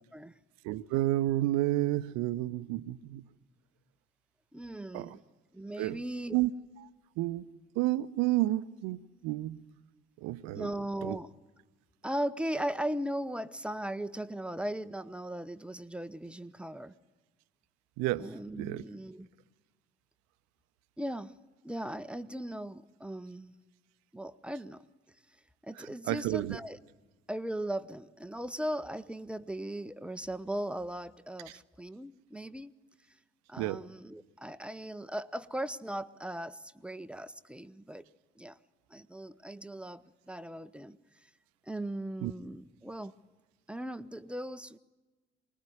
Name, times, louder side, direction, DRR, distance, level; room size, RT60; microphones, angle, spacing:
voice 1, 0.6-3.2 4.9-5.2 5.8-6.0 6.3-6.5 7.2-7.5 7.8-9.6 10.2-10.7 11.0-11.2 18.0-18.3 18.6-18.8 25.8-26.6 33.6-33.8 42.2-42.3, right 16 dB, 60° right, 0.9 m, -30 dB
voice 2, 4.5-5.2 5.5-6.3 10.5-11.3 12.0-16.9 18.2-19.3 21.0-21.3 21.6-23.5 24.1-24.8 25.6-26.8 27.3-32.7 33.5-38.1 38.4-38.6 38.9-41.0 41.2-41.3 41.7-43.1 43.7-44.8, right 1 dB, 5° right, 0.9 m, -38 dB
24.5 x 20.5 x 9.5 m
figure-of-eight pair, 50°, 31 cm